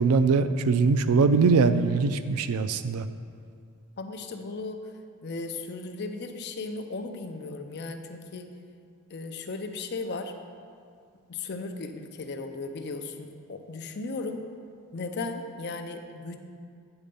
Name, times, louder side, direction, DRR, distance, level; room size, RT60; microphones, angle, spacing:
voice 1, 0.0-3.1, right 4 dB, 75° right, 11 dB, 0.4 m, -22 dB
voice 2, 4.0-4.8 5.2-8.5 9.1-10.3 11.3-14.4 14.9-16.4, left 3 dB, 50° left, 6 dB, 0.5 m, -36 dB
8.8 x 4.3 x 5.3 m, 2.2 s
head